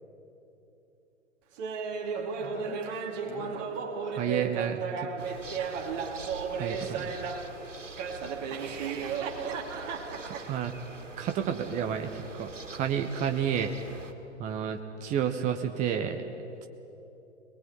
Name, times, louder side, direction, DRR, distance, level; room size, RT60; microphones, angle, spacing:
Laughter, 1.6-7.5 8.0-10.6, right 5 dB, 35° right, 2.8 m, -34 dB
voice 1, 2.4-3.8 8.3-9.3, left 4 dB, 25° left, 4 dB, 2.7 m, -47 dB
voice 2, 4.1-5.1 6.6-7.2 10.2-10.7 11.2-13.7 14.4-16.2, right 8 dB, 20° right, 5 dB, 1.1 m, -31 dB
sound 1, 5.2-14.1, right 3 dB, 80° right, 2.5 m, -45 dB
26.5 x 20.5 x 8.8 m, 3.0 s
figure-of-eight pair, 115°, 36 cm